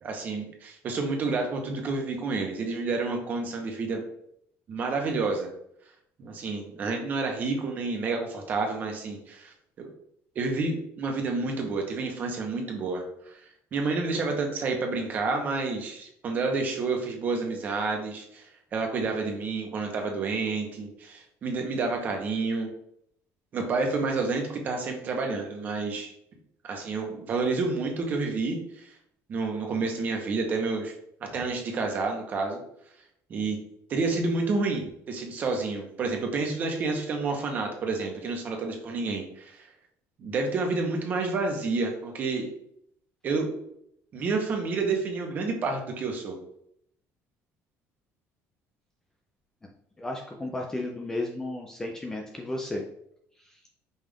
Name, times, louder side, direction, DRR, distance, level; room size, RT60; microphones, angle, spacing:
voice 1, 0.0-4.0 4.7-5.5 6.2-9.9 10.4-13.4 13.7-22.7 23.5-26.1 26.6-28.9 29.3-30.9 31.3-32.6 33.3-33.6 33.9-39.6 40.2-42.5 43.2-43.5 44.1-46.4, right 3 dB, 30° right, 3 dB, 0.8 m, -29 dB
voice 2, 50.0-52.8, left 2 dB, 10° left, 1 dB, 0.4 m, -33 dB
5.5 x 2.4 x 3.4 m, 0.72 s
cardioid pair, 180°, 5 cm